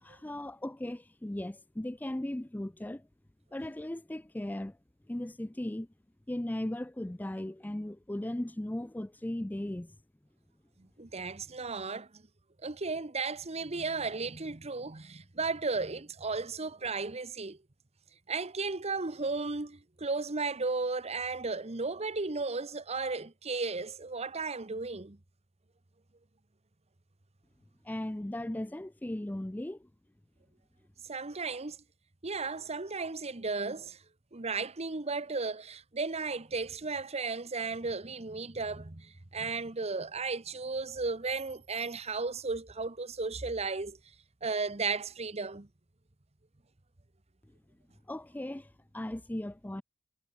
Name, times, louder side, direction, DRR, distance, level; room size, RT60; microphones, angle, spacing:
voice 1, 0.0-3.1 3.5-4.8 5.1-5.9 6.3-10.0 27.8-29.9 48.1-49.8, left 1 dB, 10° left, 0.4 m, -37 dB
voice 2, 11.0-12.2 12.6-17.6 18.3-25.2 31.1-31.8 32.2-34.0 34.3-44.0 44.4-45.7, right 4 dB, 30° right, 1.1 m, -34 dB
head